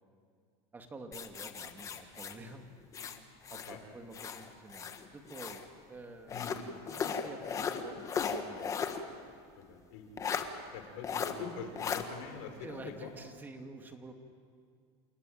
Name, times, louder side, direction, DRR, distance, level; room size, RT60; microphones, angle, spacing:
voice 1, 0.7-2.7 3.5-8.8 12.6-14.1, right 2 dB, 10° right, 5 dB, 1.9 m, -49 dB
sound 1, 1.1-3.8 4.1-5.7 6.3-9.0 9.4-9.5 10.2-10.5 11.0-11.3 11.8-12.0, left 6 dB, 20° left, 1.4 m, -37 dB
voice 2, 3.5-3.8 6.3-6.6 9.6-13.1, left 6 dB, 60° left, 5 dB, 4.4 m, -45 dB
29.0 x 19.0 x 9.1 m, 2.2 s
supercardioid pair, 155°, 15 cm